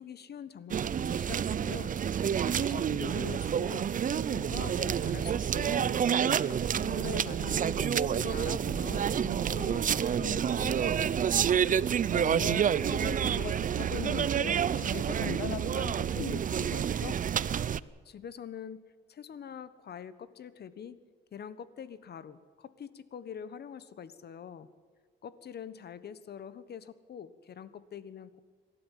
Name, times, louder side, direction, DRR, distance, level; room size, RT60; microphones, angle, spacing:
voice 1, 0.0-1.9 2.4-6.0 6.4-11.2 18.0-18.8 19.1-21.0 21.3-24.7 25.2-28.4, left 8 dB, 55° left, 15 dB, 1.3 m, -44 dB
sound 1, 0.7-17.8, right 8 dB, 40° right, 0.6 m, -29 dB
voice 2, 12.1-17.1, left 10 dB, 90° left, 13 dB, 1.4 m, -40 dB
27.0 x 12.5 x 9.3 m, 1.5 s
cardioid pair, 90°, 20 cm